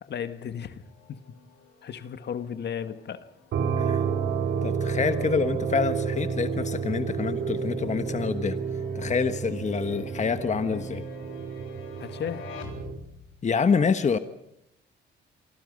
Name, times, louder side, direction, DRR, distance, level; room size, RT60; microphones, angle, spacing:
voice 1, 0.0-1.2 1.8-3.3 3.9-4.0 5.2-5.3 12.0-12.5, left 8 dB, 60° left, 1.7 m, -35 dB
sound 1, 0.8-13.4, left 7 dB, 90° left, 4.0 m, -50 dB
sound 2, 3.5-13.0, right 6 dB, 75° right, 3.8 m, -30 dB
voice 2, 4.6-8.6 8.9-11.0 13.4-14.2, left 5 dB, 35° left, 1.3 m, -26 dB
28.5 x 24.5 x 5.4 m
cardioid pair, 90°, 20 cm